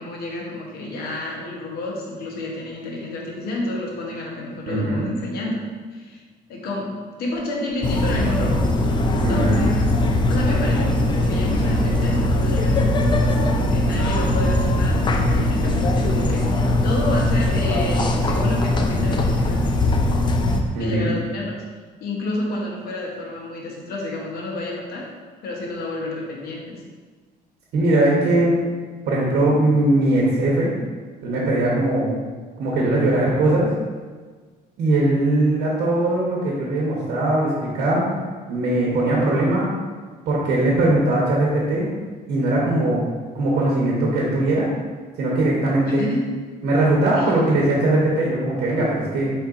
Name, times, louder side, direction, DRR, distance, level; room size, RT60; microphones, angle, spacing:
voice 1, 0.0-5.6 5.9-6.2 6.5-8.7 9.0-9.9 10.3-19.7 20.8-21.6 22.0-25.1 25.4-26.8 45.9-46.3 47.2-47.3, left 2 dB, 65° left, -2 dB, 0.9 m, -30 dB
voice 2, 4.7-5.1 9.2-9.6 20.7-21.1 27.7-28.6 29.1-30.7 31.2-32.1 32.6-33.7 34.8-38.1 38.5-39.7 40.3-41.9 42.3-43.0 43.3-44.7 45.2-46.1 46.6-49.3, right 1 dB, 65° right, -4 dB, 0.9 m, -20 dB
sound 1, 7.8-20.6, left 1 dB, 25° left, 0.4 m, -20 dB
4.3 x 3.8 x 2.4 m, 1.5 s
cardioid pair, 110°, 17 cm